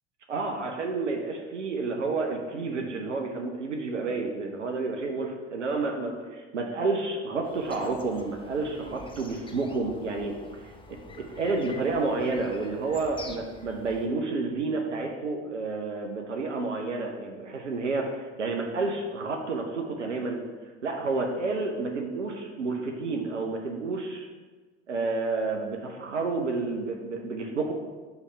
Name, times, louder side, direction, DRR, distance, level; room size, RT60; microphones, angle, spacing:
voice 1, 0.3-10.3 10.6-20.4 20.8-24.3 24.9-27.7, right 3 dB, 85° right, 2 dB, 0.7 m, -30 dB
sound 1, 7.4-14.1, left 3 dB, 15° left, 0.9 m, -47 dB
6.9 x 3.3 x 5.6 m, 1.3 s
figure-of-eight pair, 65°, 35 cm